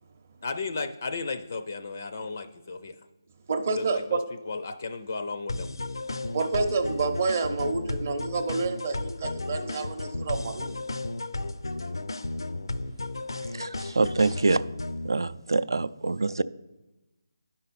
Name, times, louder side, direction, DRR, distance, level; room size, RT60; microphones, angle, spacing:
voice 1, 0.4-2.9 3.8-4.2 4.5-5.7, left 4 dB, 35° left, 8 dB, 0.4 m, -34 dB
voice 2, 3.5-4.2 6.3-10.8, right 4 dB, 30° right, 7 dB, 0.6 m, -28 dB
sound 1, 5.5-15.1, left 2 dB, 90° left, 0.5 m, -34 dB
voice 3, 13.5-14.6 15.0-16.4, right 3 dB, 85° right, 15 dB, 0.4 m, -25 dB
10.0 x 5.5 x 4.1 m, 1.0 s
figure-of-eight pair, 175°, 2 cm